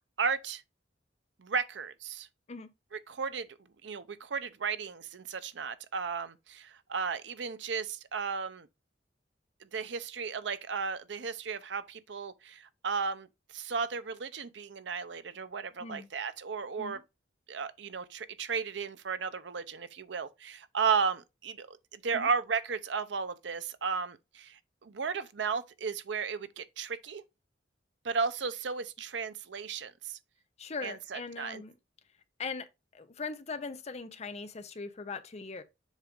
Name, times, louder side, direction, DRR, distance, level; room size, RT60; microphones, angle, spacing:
voice 1, 0.2-0.6 1.4-2.3 2.9-3.5 3.8-8.7 9.6-13.3 13.5-17.0 17.5-27.2 28.0-30.2 30.8-31.6, right 5 dB, 70° right, 0.6 m, -34 dB
voice 2, 30.6-31.8 32.4-32.6 32.9-35.6, left 4 dB, 35° left, 0.7 m, -40 dB
7.3 x 2.5 x 5.2 m
head